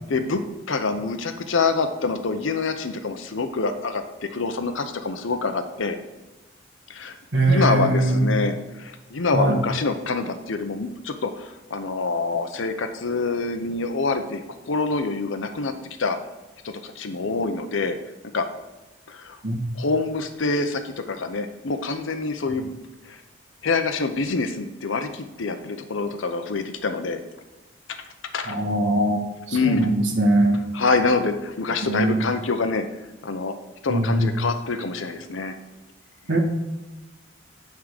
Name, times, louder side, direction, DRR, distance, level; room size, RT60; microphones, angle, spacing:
voice 1, 0.1-0.4 0.7-6.0 6.9-15.7 16.0-16.2 16.6-18.0 18.3-18.5 19.1-19.4 19.7-22.7 23.0-23.2 23.6-27.2 28.3-28.6 29.5-29.9 30.7-32.8 33.2-33.5 33.8-35.5, left 3 dB, 75° left, 8 dB, 0.7 m, -26 dB
voice 2, 7.3-8.3 9.3-9.6 19.4-19.6 28.5-29.2 29.5-30.6 31.8-32.2 33.9-34.3 36.3-36.4, right 1 dB, 60° right, 1 dB, 1.3 m, -21 dB
9.4 x 3.7 x 6.4 m, 1.1 s
head